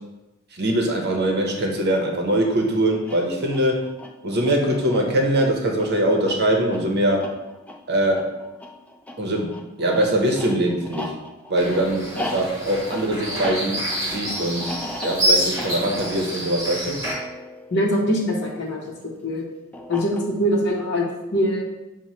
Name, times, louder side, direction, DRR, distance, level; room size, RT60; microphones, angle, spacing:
voice 1, 0.5-3.8 4.2-7.3 7.9-8.3 9.2-11.1 11.5-14.7 15.0-17.0, right 1 dB, 50° right, 1 dB, 0.7 m, -22 dB
sound 1, 2.9-18.7 19.7-20.6, left 1 dB, 5° left, 0.3 m, -38 dB
sound 2, 11.6-17.1, equal, 15° right, 1.2 m, -27 dB
voice 2, 17.7-19.4 19.9-21.6, equal, 55° left, -3 dB, 0.8 m, -23 dB
6.1 x 2.1 x 4.1 m, 1.0 s
head